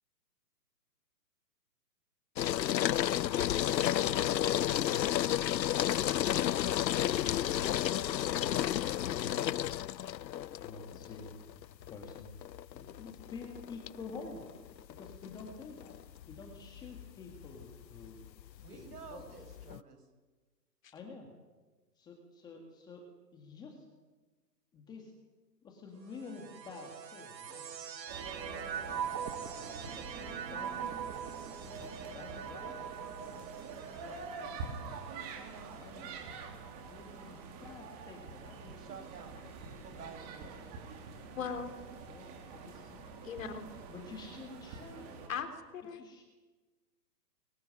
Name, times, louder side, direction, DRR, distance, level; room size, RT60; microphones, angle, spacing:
sound 1, 2.4-19.8, left 11 dB, 85° left, 0.7 m, -32 dB
voice 1, 9.1-9.4 10.6-11.3 11.9-12.3 12.7-14.5 14.9-15.9 16.3-18.2 18.5-19.4 20.9-21.3 21.9-23.0 23.3-23.8 24.7-25.1 25.6-27.6 28.3-32.7 35.8-36.2 36.9-38.6 39.4-39.5 42.0-43.0 43.9-45.3 45.9-46.2, left 4 dB, 10° left, 3 dB, 1.8 m, -49 dB
voice 2, 18.6-20.1 32.1-34.7 38.6-39.4 39.7-40.6, right 5 dB, 65° right, 6 dB, 7.2 m, -52 dB
sound 2, 26.1-37.5 38.3-39.1, right 8 dB, 85° right, 1.9 m, -44 dB
sound 3, 28.1-45.3, right 4 dB, 25° right, 3.3 m, -46 dB
voice 3, 41.4-41.7 43.2-43.7 45.3-45.5 45.7-46.0, left 6 dB, 50° left, 7 dB, 3.6 m, -38 dB
23.5 x 22.5 x 9.7 m, 1.3 s
hypercardioid pair, 170°, 49 cm